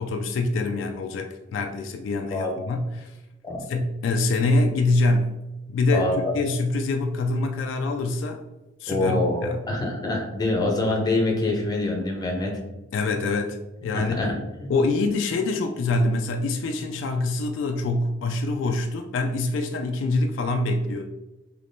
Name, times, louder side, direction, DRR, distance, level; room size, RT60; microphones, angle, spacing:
voice 1, 0.0-3.1 3.7-5.4 5.7-8.4 8.8-9.7 12.9-13.6 13.8-14.3 14.7-21.1, left 2 dB, 70° left, 4 dB, 0.3 m, -25 dB
voice 2, 5.9-6.3 8.9-12.6 13.9-14.3 14.6-14.7, left 2 dB, 20° left, 0 dB, 0.6 m, -25 dB
3.4 x 2.9 x 2.6 m, 1.0 s
head